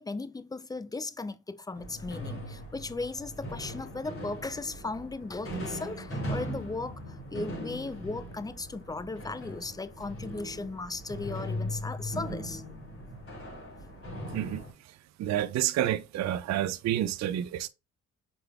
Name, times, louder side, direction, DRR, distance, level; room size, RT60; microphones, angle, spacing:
voice 1, 0.0-12.6, left 3 dB, 10° left, 0.4 m, -37 dB
sound 1, 1.7-14.7, equal, 45° left, 2.5 m, -39 dB
voice 2, 15.2-17.7, right 12 dB, 60° right, 0.4 m, -29 dB
4.8 x 3.8 x 2.3 m
cardioid pair, 70°, 32 cm